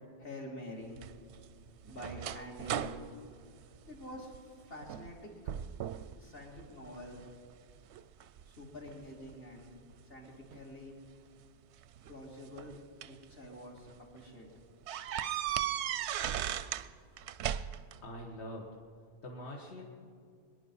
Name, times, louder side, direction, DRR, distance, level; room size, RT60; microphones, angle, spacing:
voice 1, 0.2-1.0 1.8-3.0 3.9-5.3 6.2-7.2 8.4-9.7 10.1-11.0 12.1-12.8 13.0-14.5 16.0-16.2, left 1 dB, 60° left, -2 dB, 2.9 m, -47 dB
sound 1, 1.0-4.4 4.8-5.2 5.5-6.1 6.6-7.3 7.9-9.3 10.5-10.6 11.8-13.2 13.8-13.9 14.2-14.3 14.9-16.9 17.2-18.0, right 10 dB, 90° right, 0.9 m, -37 dB
voice 2, 18.0-18.7 19.2-19.9, left 1 dB, 75° left, -1 dB, 1.6 m, -44 dB
23.5 x 10.5 x 5.5 m, 2.3 s
omnidirectional pair, 1.1 m